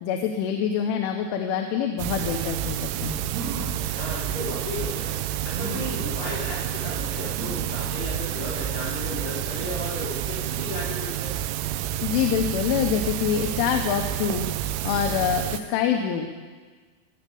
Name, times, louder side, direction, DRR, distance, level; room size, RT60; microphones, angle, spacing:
voice 1, 0.0-3.2 12.0-14.5 14.8-16.4, left 8 dB, 85° left, 4 dB, 3.3 m, -25 dB
sound 1, 2.0-15.6, right 12 dB, 85° right, 3.1 m, -29 dB
sound 2, 3.3-3.9 4.6-4.7 5.5-6.1 7.3-7.8 8.3-8.4 8.7-8.8, right 2 dB, 60° right, 4.7 m, -36 dB
voice 2, 3.8-11.3, left 2 dB, 65° left, -7 dB, 6.9 m, -35 dB
20.5 x 8.3 x 7.0 m, 1.4 s
omnidirectional pair, 5.6 m